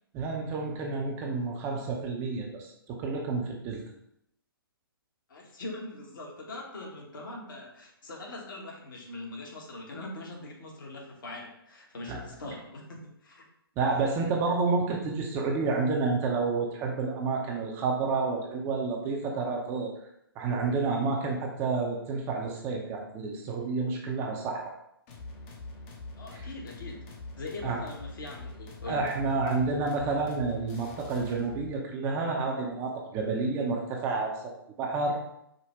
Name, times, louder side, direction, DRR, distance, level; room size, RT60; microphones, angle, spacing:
voice 1, 0.1-3.8 12.1-12.2 13.8-19.9 20.4-24.7 26.3-26.4 27.6-27.8 28.9-34.4 34.8-35.2, right 4 dB, 20° right, 0 dB, 0.6 m, -29 dB
voice 2, 5.3-13.4 26.2-27.1 27.4-29.1, left 2 dB, 55° left, -1 dB, 1.2 m, -42 dB
sound 1, 25.1-31.8, left 2 dB, 25° left, 0.7 m, -44 dB
5.1 x 2.2 x 4.3 m, 0.74 s
figure-of-eight pair, 135°, 13 cm